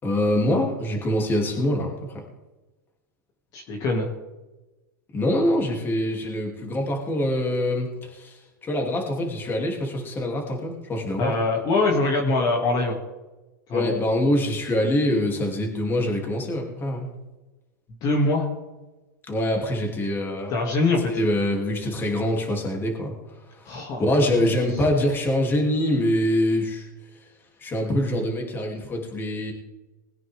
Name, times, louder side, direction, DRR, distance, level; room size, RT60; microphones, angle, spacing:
voice 1, 0.0-2.2 5.1-11.3 13.7-17.1 19.3-20.5 21.1-23.1 23.5-26.9 27.6-29.5, left 1 dB, 20° left, 1 dB, 3.1 m, -24 dB
voice 2, 3.5-4.1 11.2-13.0 13.7-13.9 18.0-18.5 20.5-21.1 23.7-24.3, left 2 dB, 40° left, -1 dB, 2.6 m, -23 dB
20.5 x 9.5 x 3.7 m, 1.1 s
hypercardioid pair, 125°, 10 cm